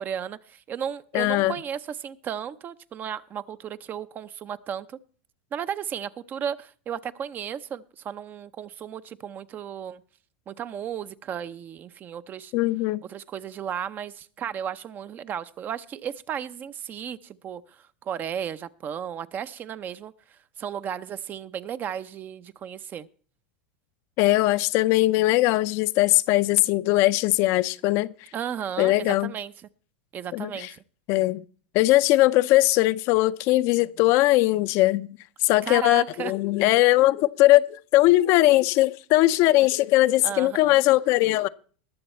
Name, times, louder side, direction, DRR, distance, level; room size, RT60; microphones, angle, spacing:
voice 1, 0.0-5.0 5.5-10.0 10.5-12.5 13.1-23.1 28.3-29.5 30.1-30.8 35.6-36.3 40.2-40.8, right 8 dB, 30° right, 0.6 m, -34 dB
voice 2, 1.1-1.5 12.5-13.0 24.2-28.1 28.8-29.3 30.3-30.7 31.1-31.4 31.7-35.1 35.4-41.5, left 17 dB, 50° left, 0.5 m, -20 dB
20.5 x 7.0 x 4.3 m
hypercardioid pair, 115°, 6 cm